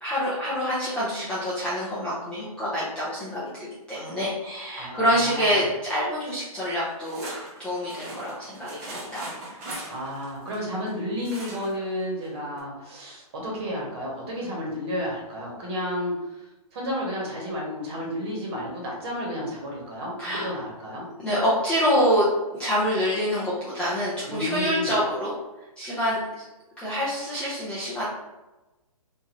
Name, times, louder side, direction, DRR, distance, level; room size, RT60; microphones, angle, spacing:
voice 1, 0.0-7.3 7.6-9.8 20.2-20.5 21.2-25.3 25.8-26.2 26.8-28.1, equal, 5° left, -11 dB, 0.5 m, -26 dB
voice 2, 4.8-5.7 9.9-16.4 16.7-21.1 24.2-24.9, equal, 40° right, -3 dB, 1.1 m, -32 dB
sound 1, 6.6-10.9 11.2-11.9 12.2-12.3 12.6-12.7, right 1 dB, 25° right, 0.7 m, -39 dB
3.1 x 2.5 x 2.5 m, 1.1 s
hypercardioid pair, 150°, 19 cm